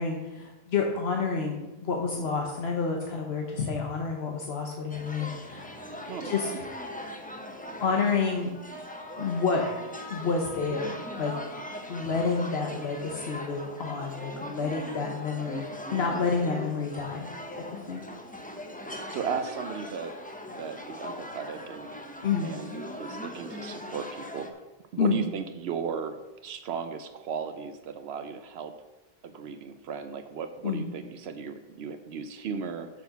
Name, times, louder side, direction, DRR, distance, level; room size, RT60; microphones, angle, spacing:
voice 1, 0.0-5.7 6.2-6.5 7.8-8.5 9.2-9.6 10.1-11.3 11.9-15.6 15.9-17.3 17.5-18.0 22.2-22.5 25.0-25.2 30.6-30.9, left 5 dB, 80° left, 1 dB, 1.2 m, -29 dB
sound 1, 4.9-24.5, left 1 dB, 10° left, 0.8 m, -40 dB
voice 2, 6.1-6.6 15.9-16.1 19.1-20.1 20.6-21.9 22.4-24.5 24.9-28.7 29.2-32.9, right 6 dB, 85° right, 8 dB, 0.9 m, -36 dB
sound 2, 8.7-14.8, left 1 dB, 30° left, 2.3 m, -47 dB
6.7 x 6.2 x 6.7 m, 1.1 s
omnidirectional pair, 1.0 m